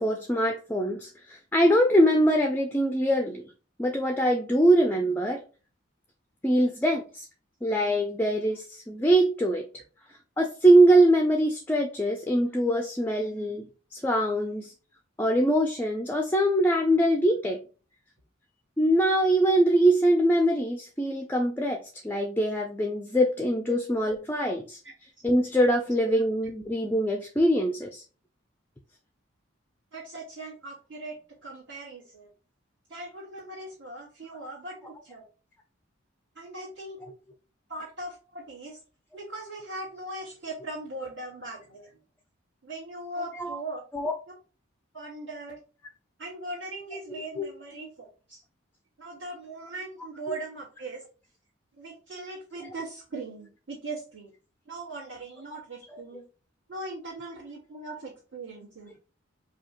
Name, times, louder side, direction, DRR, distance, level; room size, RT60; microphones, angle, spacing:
voice 1, 0.0-3.4 3.8-5.4 6.4-7.3 7.6-9.6 10.4-14.7 15.2-17.6 18.8-21.8 22.0-24.8 25.2-28.0 43.3-43.6 43.9-44.1 47.4-47.5, right 1 dB, 10° left, 4 dB, 0.3 m, -23 dB
voice 2, 29.9-32.3 32.9-35.2 36.4-37.0 37.7-38.8 39.1-41.9 42.6-43.8 44.9-45.6 46.2-48.4 49.0-51.0 51.8-54.3 54.7-56.2 56.7-58.9, right 2 dB, 65° right, -10 dB, 1.7 m, -39 dB
4.8 x 2.3 x 2.9 m, 0.35 s
head